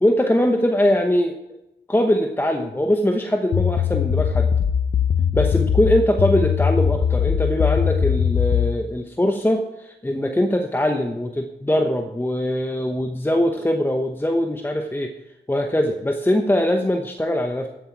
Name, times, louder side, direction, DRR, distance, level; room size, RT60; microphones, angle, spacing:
voice 1, 0.0-1.4 1.9-4.5 5.3-15.1 15.5-17.7, left 1 dB, 10° left, 4 dB, 1.0 m, -21 dB
sound 1, 3.5-8.7, left 7 dB, 65° left, 0.8 m, -20 dB
13.5 x 8.0 x 4.7 m, 0.89 s
cardioid pair, 75°, 18 cm